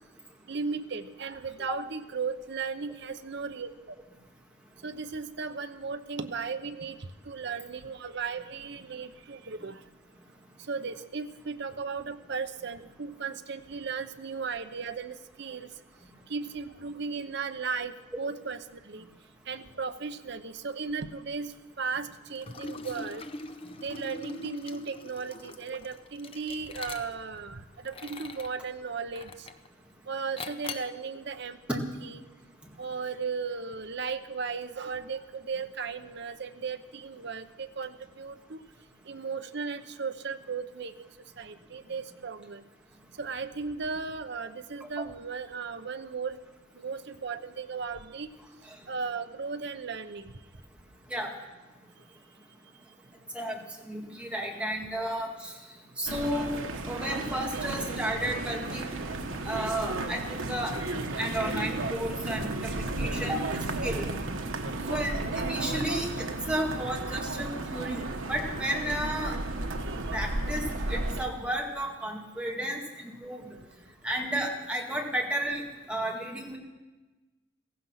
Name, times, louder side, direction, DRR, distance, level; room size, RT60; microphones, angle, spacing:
voice 1, 0.5-3.9 4.8-7.0 7.2-9.8 10.7-15.7 16.3-19.0 19.5-23.2 23.8-29.5 30.1-32.2 32.8-38.6 39.1-41.1 41.4-42.6 43.2-46.4 46.8-48.3 48.9-50.3 57.5-57.6 69.9-70.0, right 5 dB, 60° right, 9 dB, 0.8 m, -36 dB
Liquid, 22.4-27.4 27.8-28.6 29.2-29.7 30.4-31.0, left 3 dB, 30° left, 0.7 m, -42 dB
voice 2, 53.3-55.6 56.0-59.1 59.4-60.8 61.2-63.4 63.8-64.1 64.9-69.4 70.1-73.6 74.0-76.6, right 1 dB, 5° right, 0 dB, 2.0 m, -33 dB
piccadilly approach, 56.1-71.3, right 2 dB, 90° right, 1.3 m, -33 dB
16.0 x 15.5 x 5.8 m, 1.2 s
head